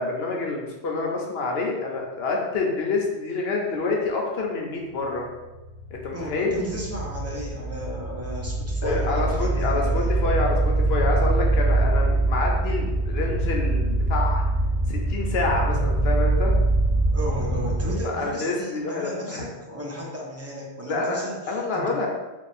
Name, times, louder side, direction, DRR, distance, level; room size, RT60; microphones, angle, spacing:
voice 1, 0.0-5.2 5.9-6.5 8.8-14.4 14.9-16.5 18.0-19.5 20.9-21.2 21.5-22.1, left 3 dB, 65° left, 0 dB, 0.9 m, -27 dB
sound 1, 5.2-17.9, right 2 dB, 20° left, 1.0 m, -24 dB
voice 2, 6.1-10.1 17.1-21.9, equal, 15° right, -4 dB, 0.6 m, -34 dB
3.5 x 2.4 x 4.1 m, 1.1 s
omnidirectional pair, 1.1 m